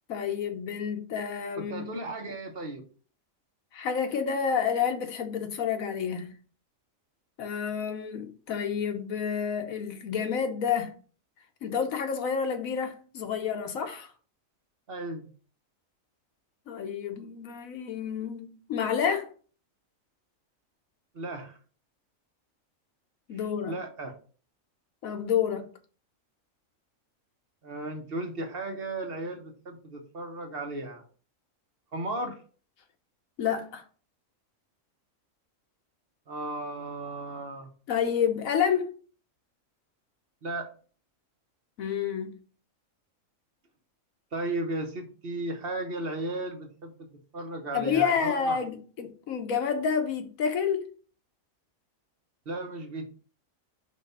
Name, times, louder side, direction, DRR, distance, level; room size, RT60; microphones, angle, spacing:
voice 1, 0.1-1.9 3.7-6.3 7.4-10.9 11.6-14.1 16.7-19.3 23.3-23.7 25.0-25.7 33.4-33.8 37.9-38.9 41.8-42.4 47.7-50.8, left 7 dB, 85° left, 1.4 m, -29 dB
voice 2, 1.6-2.8 14.9-15.3 21.1-21.6 23.3-24.1 27.6-31.0 31.9-32.4 36.3-37.7 40.4-40.7 44.3-47.1 47.3-48.6 52.5-53.1, right 2 dB, 45° right, 1.1 m, -35 dB
5.2 x 3.4 x 5.4 m
omnidirectional pair, 1.4 m